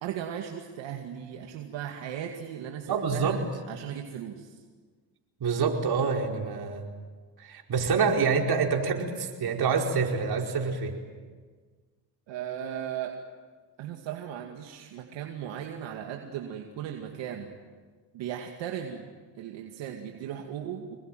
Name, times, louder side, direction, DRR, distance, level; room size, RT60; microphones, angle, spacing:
voice 1, 0.0-4.6 12.3-13.2 13.8-17.5 18.1-19.1 19.4-21.0, right 9 dB, 75° right, 3 dB, 2.3 m, -37 dB
voice 2, 2.9-3.4 5.4-6.8 7.4-10.9, right 5 dB, 55° right, 1 dB, 5.0 m, -26 dB
26.5 x 21.5 x 9.2 m, 1.5 s
supercardioid pair, 80°, 44 cm